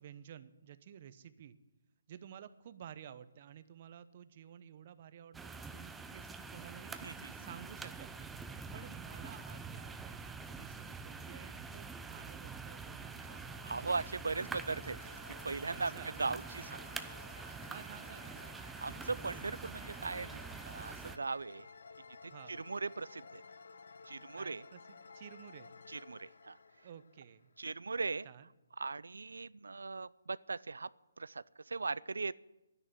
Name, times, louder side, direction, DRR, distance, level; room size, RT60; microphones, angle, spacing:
voice 1, 0.0-1.6 2.1-7.0 7.4-8.3 8.7-11.9 12.1-13.4 15.7-16.2 17.6-18.4 22.3-22.6 24.3-25.7 26.8-27.5 28.2-28.5, right 9 dB, 40° right, 13 dB, 0.9 m, -53 dB
sound 1, 5.3-21.2, right 4 dB, 5° right, 0.6 m, -46 dB
voice 2, 7.0-7.3 13.6-15.1 15.4-16.8 17.5-17.6 18.8-21.7 22.2-23.4 24.1-24.6 25.9-26.6 27.6-28.3 28.8-30.9 31.2-32.3, right 4 dB, 80° right, 20 dB, 0.4 m, -39 dB
sound 2, 13.0-27.8, left 4 dB, 70° left, 1.1 m, -55 dB
11.5 x 10.0 x 9.5 m, 0.96 s
hypercardioid pair, 150°, 0 cm